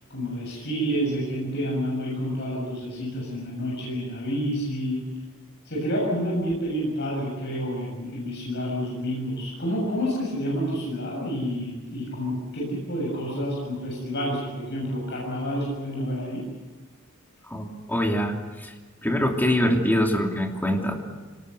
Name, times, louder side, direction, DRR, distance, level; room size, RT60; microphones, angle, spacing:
voice 1, 0.1-5.0 5.7-16.4, equal, 55° left, -4 dB, 7.4 m, -29 dB
voice 2, 17.5-18.7 19.0-20.9, equal, 10° left, 1 dB, 2.9 m, -24 dB
25.5 x 19.5 x 8.0 m, 1.3 s
head